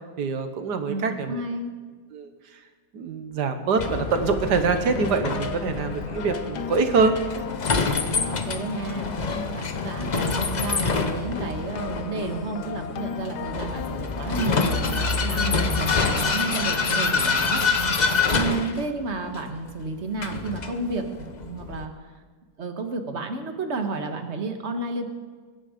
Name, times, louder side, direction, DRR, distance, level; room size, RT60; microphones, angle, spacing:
voice 1, 0.2-1.4 2.1-2.3 2.9-7.1, right 4 dB, 65° right, 8 dB, 1.6 m, -24 dB
voice 2, 0.9-1.7 8.2-9.1 9.5-22.1 22.6-25.1, right 3 dB, 40° right, 5 dB, 1.5 m, -31 dB
sound 1, 3.8-16.6, left 7 dB, 65° left, 1.3 m, -36 dB
Vehicle, 3.8-21.9, left 4 dB, 45° left, 0.5 m, -27 dB
24.0 x 10.5 x 5.1 m, 1.5 s
omnidirectional pair, 2.0 m